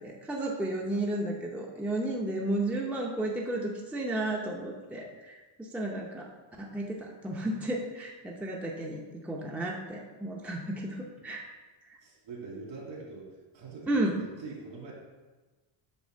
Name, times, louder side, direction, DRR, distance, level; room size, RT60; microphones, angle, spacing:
voice 1, 0.0-6.3 6.6-11.5 13.9-14.2, right 1 dB, 5° right, -1 dB, 0.6 m, -33 dB
voice 2, 12.0-14.9, right 3 dB, 65° right, -2 dB, 2.5 m, -43 dB
8.5 x 3.5 x 6.4 m, 1.2 s
cardioid pair, 155°, 50 cm